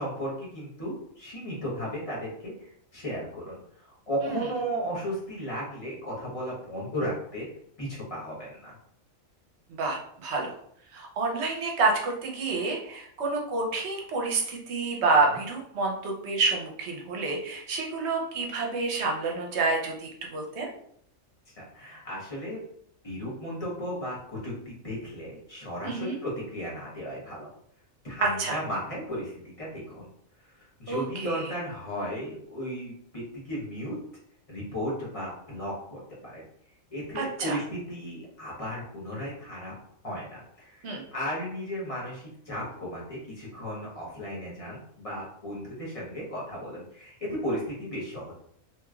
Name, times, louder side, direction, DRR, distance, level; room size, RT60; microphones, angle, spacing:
voice 1, 0.0-7.5 7.8-8.8 15.3-15.4 21.5-22.6 23.0-27.5 28.0-30.1 30.4-33.9 34.5-36.4 36.9-39.7 40.0-48.3, equal, 30° left, -6 dB, 1.1 m, -35 dB
voice 2, 9.7-10.5 10.9-20.7 25.8-26.1 28.4-28.6 30.9-31.5 37.1-37.6 40.8-41.0, right 3 dB, 60° right, 0 dB, 0.9 m, -28 dB
3.0 x 2.9 x 2.4 m, 0.68 s
omnidirectional pair, 1.4 m